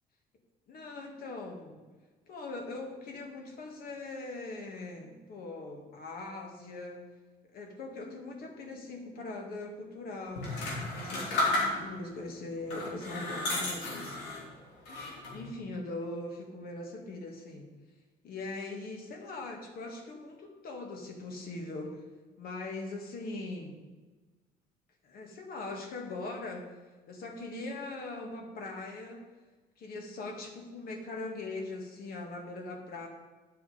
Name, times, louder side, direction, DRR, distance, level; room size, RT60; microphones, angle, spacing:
voice 1, 0.7-1.8 2.3-7.0 7.5-14.2 15.3-17.7 18.2-22.0 22.4-23.7 25.0-26.8 27.1-29.2 29.8-33.1, left 2 dB, 60° left, 2 dB, 2.0 m, -41 dB
sound 1, 10.4-12.1 12.6-14.5 14.9-15.5, left 2 dB, 85° left, 3.0 m, -33 dB
9.6 x 7.0 x 5.0 m, 1.3 s
cardioid pair, 110°, 17 cm